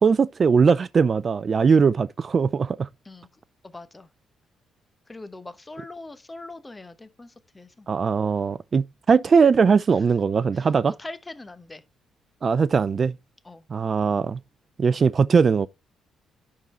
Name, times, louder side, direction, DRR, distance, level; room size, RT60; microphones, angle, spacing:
voice 1, 0.0-2.9 7.9-11.0 12.4-13.2 13.7-14.4 14.8-15.7, right 5 dB, 40° right, 0.3 m, -20 dB
voice 2, 3.6-4.1 5.1-7.9 10.5-11.8 13.4-13.6, left 2 dB, 20° left, 0.8 m, -42 dB
11.0 x 3.8 x 4.2 m
cardioid pair, 90°, 0 cm